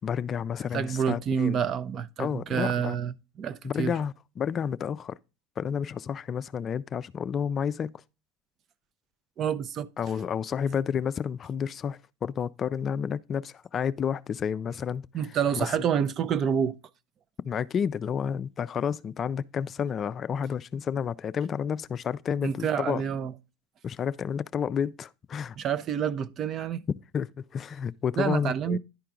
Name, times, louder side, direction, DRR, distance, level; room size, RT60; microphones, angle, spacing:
voice 1, 0.0-1.6 2.2-3.0 3.6-5.2 5.6-8.0 10.0-15.0 15.6-15.7 17.4-23.0 23.8-25.6 27.1-28.8, left 7 dB, 35° left, 0.3 m, -30 dB
voice 2, 0.7-3.9 9.4-9.9 15.1-16.8 22.4-23.3 25.6-26.8 28.2-28.8, right 8 dB, 45° right, 0.6 m, -28 dB
11.0 x 4.6 x 3.8 m
hypercardioid pair, 95°, 0 cm